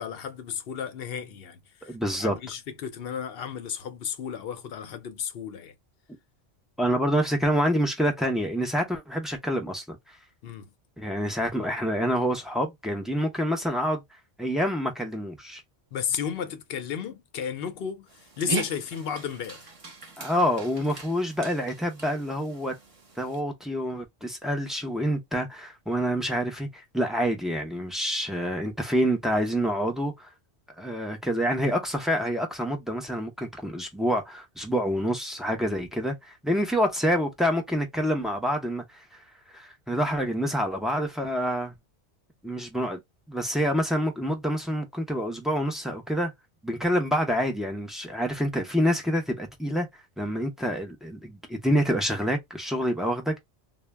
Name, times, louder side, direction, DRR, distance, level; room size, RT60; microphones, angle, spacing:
voice 1, 0.0-5.7 10.4-10.7 15.9-18.1 18.4-19.7, left 8 dB, 65° left, 0.8 m, -33 dB
voice 2, 1.8-2.4 6.8-10.2 11.0-14.0 14.4-15.6 20.2-22.8 23.2-30.3 30.8-39.2 39.5-41.7 42.4-43.0 43.3-46.3 46.6-49.9 50.2-53.4, equal, ahead, 0.4 m, -27 dB
Dog, 18.1-23.4, right 4 dB, 35° right, 0.7 m, -38 dB
2.1 x 2.1 x 3.3 m
omnidirectional pair, 1.1 m